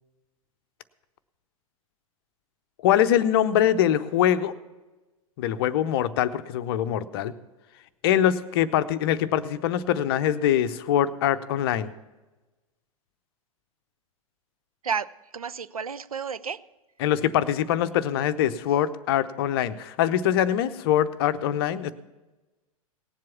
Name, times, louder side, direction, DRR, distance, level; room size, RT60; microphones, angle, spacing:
voice 1, 2.8-4.5 5.4-7.3 8.0-11.9 17.0-21.9, left 10 dB, 40° left, 13 dB, 0.6 m, -23 dB
voice 2, 14.8-16.6, right 6 dB, 75° right, 15 dB, 0.5 m, -31 dB
18.0 x 7.6 x 5.7 m, 1.1 s
figure-of-eight pair, 100°, 18 cm